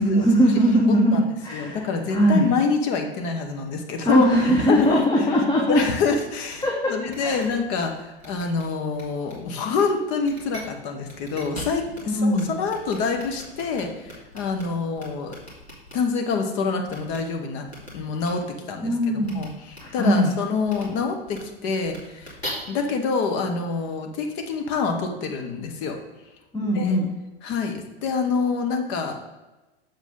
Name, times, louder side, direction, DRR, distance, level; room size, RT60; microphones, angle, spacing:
voice 1, 0.0-1.8 2.1-2.5 4.0-5.8 6.6-6.9 7.2-7.4 12.1-12.5 18.8-19.4 20.0-20.3 26.5-27.1, equal, 15° left, -1 dB, 1.1 m, -20 dB
voice 2, 1.5-5.3 5.7-15.3 15.9-17.7 17.9-22.3 22.7-26.0 26.6-27.0 27.4-29.2, left 4 dB, 40° left, 4 dB, 1.1 m, -26 dB
sound 1, 5.7-5.8 6.1-6.2 6.5-6.6 7.1-7.8 8.2-8.6 8.9-9.3 9.7-9.8 10.2-10.6 11.0-12.0 12.3-12.4 12.7-14.6 15.0-15.9 16.9-17.2 17.7-17.9 18.2-18.3 19.2-19.4 19.7-19.8 20.7-20.8 21.3-21.4 21.8-22.5, left 1 dB, 85° left, 2.6 m, -40 dB
7.3 x 7.2 x 3.7 m, 1.1 s
figure-of-eight pair, 90°, 31 cm